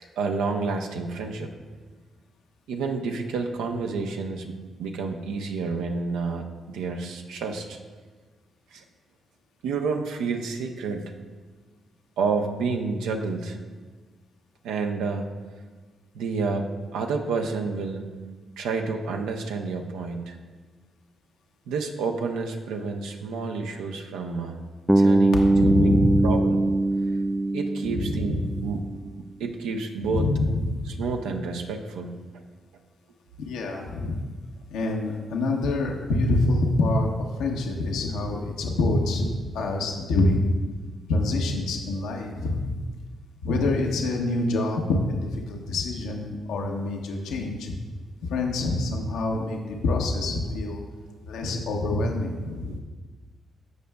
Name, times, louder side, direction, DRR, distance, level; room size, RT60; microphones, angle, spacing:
voice 1, 0.2-1.5 2.7-7.8 8.7-8.8 9.6-11.1 12.2-13.6 14.6-15.3 16.1-16.7 16.9-18.1 18.6-20.3 21.7-24.6 24.9-25.9 26.2-26.7 27.5-28.9 29.4-30.3 30.8-32.2 50.4-50.5 52.6-52.8, right 4 dB, 85° right, 3 dB, 0.7 m, -29 dB
Bass guitar, 24.9-29.0, right 2 dB, 10° right, 0.3 m, -22 dB
voice 2, 25.5-26.3 27.9-28.6 30.0-30.8 33.4-34.2 34.7-39.3 39.5-40.5 41.1-42.8 43.4-47.7 48.2-50.8 51.2-52.7, left 2 dB, 80° left, 1 dB, 0.8 m, -26 dB
14.5 x 5.3 x 2.3 m, 1.4 s
supercardioid pair, 55°, 0 cm